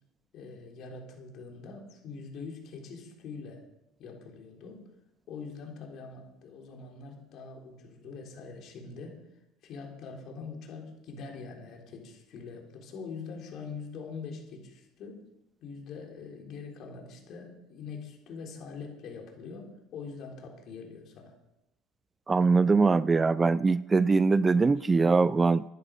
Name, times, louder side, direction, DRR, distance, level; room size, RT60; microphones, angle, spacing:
voice 1, 0.3-3.6 4.0-4.8 5.3-9.2 9.6-15.2 15.6-21.3 24.8-24.9, left 5 dB, 55° left, 1 dB, 3.7 m, -43 dB
voice 2, 22.3-25.6, right 4 dB, 20° right, 18 dB, 0.4 m, -22 dB
12.5 x 10.5 x 5.5 m, 0.90 s
hypercardioid pair, 80°, 0 cm